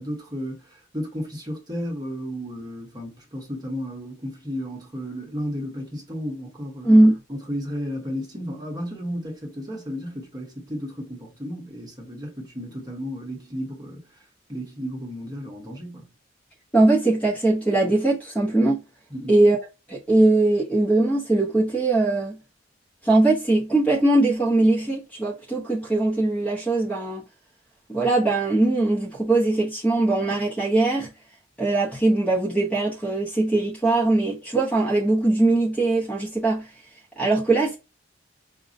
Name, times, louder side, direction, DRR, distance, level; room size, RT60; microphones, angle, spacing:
voice 1, 0.0-6.9 7.3-14.1 14.5-16.1 19.1-19.4, equal, 20° right, 1.0 m, -33 dB
voice 2, 6.8-7.2 16.7-18.8 19.3-19.6 19.9-22.4 23.0-27.2 27.9-31.1 31.6-36.7 37.2-37.8, right 2 dB, 5° left, 0.8 m, -20 dB
5.1 x 2.2 x 2.5 m
head